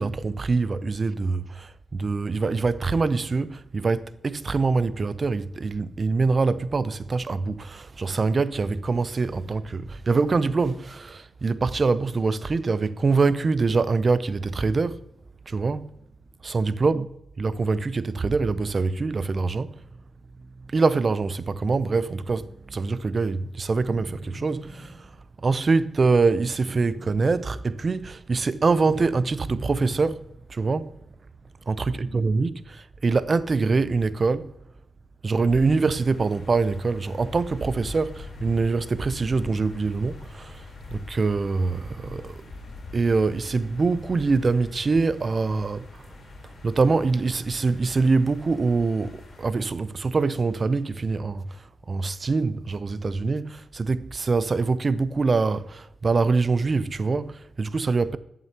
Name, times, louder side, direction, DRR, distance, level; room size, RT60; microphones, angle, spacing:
voice 1, 0.0-15.0 15.5-16.0 16.4-19.8 20.7-25.1 25.4-30.2 30.5-30.9 31.7-34.5 35.2-40.6 40.9-42.4 42.9-46.0 46.6-51.4 51.9-58.2, right 4 dB, 40° right, 0.6 m, -24 dB
sound 1, 23.7-25.3 26.2-27.7 28.1-30.5, right 1 dB, 55° right, 4.0 m, -43 dB
sound 2, 35.5-49.5, left 2 dB, 60° left, 3.8 m, -43 dB
14.0 x 7.6 x 2.9 m
cardioid pair, 85°, 0 cm